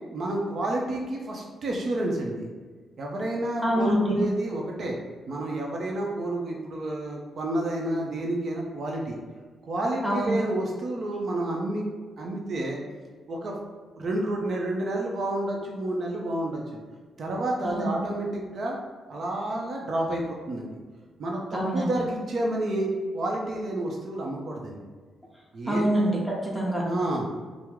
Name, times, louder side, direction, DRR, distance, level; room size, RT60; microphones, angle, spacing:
voice 1, 0.1-2.5 3.0-5.0 5.3-9.2 9.6-11.8 12.2-12.8 13.3-13.6 14.0-16.8 17.2-18.8 19.1-20.7 21.2-24.8 25.5-25.8 26.8-27.3, right 1 dB, 55° right, -1 dB, 0.6 m, -30 dB
voice 2, 3.6-4.2 10.0-10.3 17.6-17.8 21.5-21.9 25.7-26.8, equal, ahead, -4 dB, 1.0 m, -25 dB
4.5 x 2.0 x 3.6 m, 1.4 s
cardioid pair, 90°, 0 cm